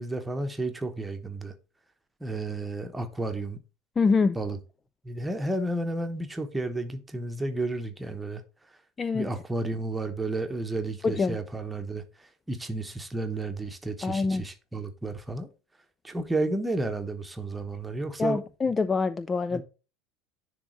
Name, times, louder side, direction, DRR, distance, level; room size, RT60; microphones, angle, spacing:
voice 1, 0.0-1.5 2.2-3.6 4.3-4.6 5.0-8.4 9.1-15.5 16.0-18.4 19.5-19.6, right 2 dB, 10° right, 1.1 m, -32 dB
voice 2, 4.0-4.4 9.0-9.3 11.0-11.4 14.0-14.4 18.2-19.6, left 4 dB, 20° left, 0.3 m, -25 dB
10.0 x 3.5 x 4.3 m
figure-of-eight pair, 70°, 0 cm